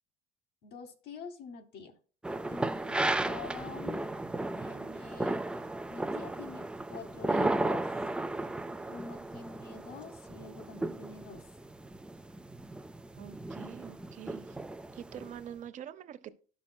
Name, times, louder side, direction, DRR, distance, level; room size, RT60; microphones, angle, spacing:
voice 1, 0.6-2.0 2.5-4.1 4.5-5.4 5.9-7.9 8.9-11.4, left 5 dB, 65° left, 1.1 m, -46 dB
sound 1, 2.2-15.4, right 2 dB, 5° right, 0.3 m, -35 dB
voice 2, 13.2-14.6 14.9-16.4, right 10 dB, 45° right, 0.7 m, -45 dB
12.5 x 5.9 x 2.2 m
cardioid pair, 130°, 18 cm